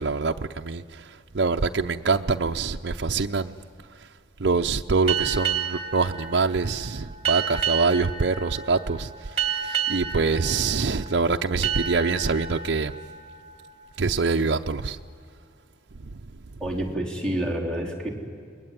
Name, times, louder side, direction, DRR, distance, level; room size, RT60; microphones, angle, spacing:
voice 1, 0.0-3.5 3.9-4.1 4.4-12.9 14.0-15.0 16.0-16.1, right 4 dB, 60° right, 3 dB, 0.6 m, -25 dB
sound 1, 5.1-14.4, right 8 dB, 30° right, 2.8 m, -31 dB
voice 2, 16.6-18.1, right 1 dB, 5° left, -1 dB, 3.9 m, -28 dB
28.5 x 21.0 x 9.4 m, 2.3 s
head